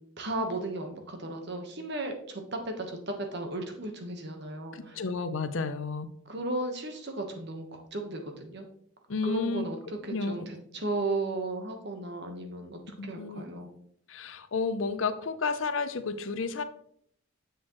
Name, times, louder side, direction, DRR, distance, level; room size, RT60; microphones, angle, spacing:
voice 1, 0.2-5.0 6.2-8.6 9.2-13.7, right 2 dB, 55° right, 4 dB, 1.3 m, -35 dB
voice 2, 4.7-6.1 9.1-9.6 10.0-10.3 13.0-13.5 14.1-16.6, left 4 dB, 70° left, 11 dB, 0.6 m, -31 dB
7.7 x 6.4 x 3.1 m, 0.66 s
head